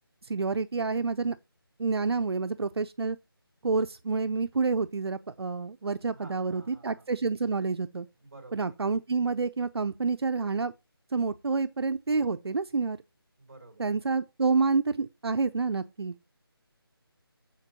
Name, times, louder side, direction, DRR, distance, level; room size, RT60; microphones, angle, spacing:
voice 1, 0.2-1.4 1.8-3.2 3.6-8.1 8.5-10.7 11.1-13.0 13.8-16.2, right 4 dB, 80° right, 0.6 m, -28 dB
voice 2, 6.1-7.1 8.2-8.7 13.4-13.9, right 2 dB, 35° right, 2.9 m, -51 dB
13.0 x 4.5 x 2.8 m
figure-of-eight pair, 175°, 13 cm